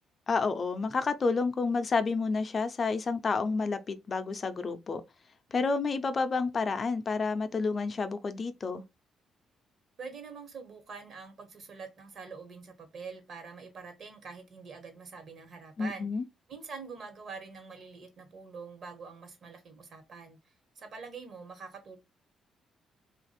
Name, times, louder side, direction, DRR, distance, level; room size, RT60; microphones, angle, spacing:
voice 1, 0.3-5.0 5.5-8.8 15.8-16.2, left 4 dB, 40° left, 0.5 m, -30 dB
voice 2, 10.0-16.1 16.5-20.4 20.7-22.0, right 5 dB, 60° right, 1.3 m, -45 dB
2.9 x 2.5 x 4.1 m
cardioid pair, 90°, 0 cm